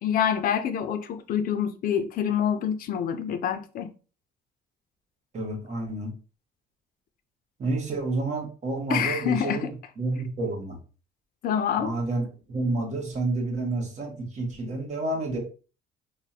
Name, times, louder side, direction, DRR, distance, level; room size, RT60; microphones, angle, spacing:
voice 1, 0.0-3.9 8.9-9.7 11.4-11.9, left 8 dB, 60° left, 0.6 m, -26 dB
voice 2, 5.3-6.1 7.6-9.7 10.0-10.8 11.8-15.4, right 2 dB, 45° right, 1.4 m, -29 dB
3.3 x 2.2 x 4.1 m
cardioid pair, 110°, 17 cm